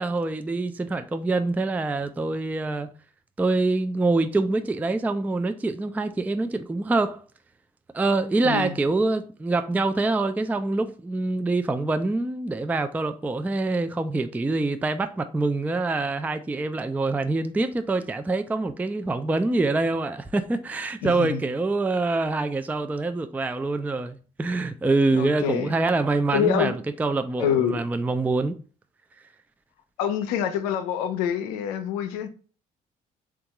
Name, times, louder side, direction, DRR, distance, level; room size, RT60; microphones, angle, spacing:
voice 1, 0.0-2.9 3.4-7.2 7.9-28.6, right 3 dB, 10° right, 0.3 m, -25 dB
voice 2, 8.4-8.8 21.0-21.4 25.1-25.7 26.3-26.8 27.4-27.8 30.0-32.3, left 8 dB, 85° left, 0.5 m, -26 dB
3.5 x 2.4 x 2.9 m
hypercardioid pair, 55°, 19 cm